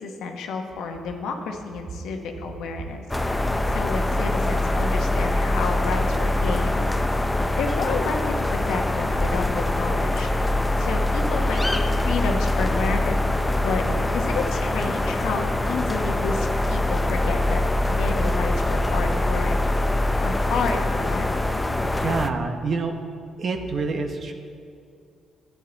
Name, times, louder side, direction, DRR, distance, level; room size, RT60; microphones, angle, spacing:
voice 1, 0.0-3.0 3.7-6.9 7.2-13.2 13.6-13.9 14.1-19.6 20.2-21.3, left 4 dB, 85° left, 4 dB, 1.1 m, -30 dB
sound 1, 3.1-22.3, left 1 dB, 10° left, 0.5 m, -23 dB
voice 2, 21.8-22.9 23.4-24.3, right 4 dB, 50° right, 5 dB, 0.9 m, -27 dB
13.0 x 8.6 x 4.0 m, 2.4 s
cardioid pair, 90°, 0 cm